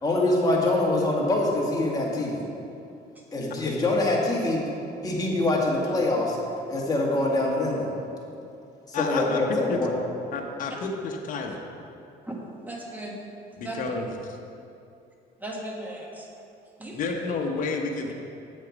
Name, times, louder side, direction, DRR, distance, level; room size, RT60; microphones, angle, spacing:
voice 1, 0.0-2.5 3.3-4.6 5.0-6.4 6.7-7.9 8.9-10.0, left 2 dB, 20° left, -3 dB, 1.8 m, -24 dB
voice 2, 8.9-9.8 10.3-11.7 13.6-14.4 16.9-18.1, left 4 dB, 50° left, 1 dB, 0.9 m, -30 dB
voice 3, 12.7-13.2 13.6-13.8 15.4-16.3 16.8-17.1, right 1 dB, 10° right, -2 dB, 1.5 m, -36 dB
8.0 x 6.4 x 5.2 m, 2.6 s
cardioid pair, 110°, 17 cm